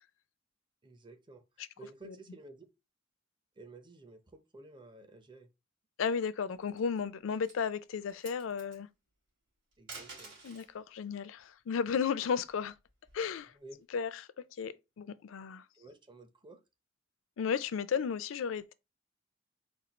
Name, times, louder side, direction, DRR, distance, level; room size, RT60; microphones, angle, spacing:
voice 1, 0.8-1.4 1.8-2.7 3.6-5.5 9.8-10.4 13.5-13.8 15.7-16.6, right 2 dB, 25° right, 0.6 m, -52 dB
voice 2, 6.0-8.9 10.4-12.7 13.1-13.5 13.9-14.1 14.6-15.6 17.4-18.7, left 6 dB, 70° left, 0.4 m, -34 dB
sound 1, 6.5-7.0 7.4-7.6 8.0-8.8 9.7-10.7 12.2-13.4, right 3 dB, 65° right, 2.5 m, -50 dB
4.3 x 2.3 x 4.0 m
head